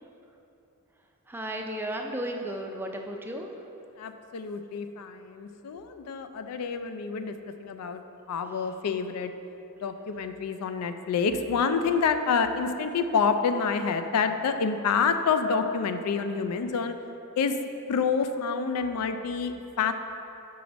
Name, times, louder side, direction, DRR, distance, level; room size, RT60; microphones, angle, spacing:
voice 1, 1.3-3.5, right 1 dB, 10° right, 2 dB, 0.3 m, -34 dB
voice 2, 4.0-8.0 8.3-9.3 9.8-16.9 17.4-17.6 17.9-19.9, left 5 dB, 85° left, 8 dB, 0.4 m, -28 dB
5.9 x 4.7 x 4.0 m, 2.9 s
head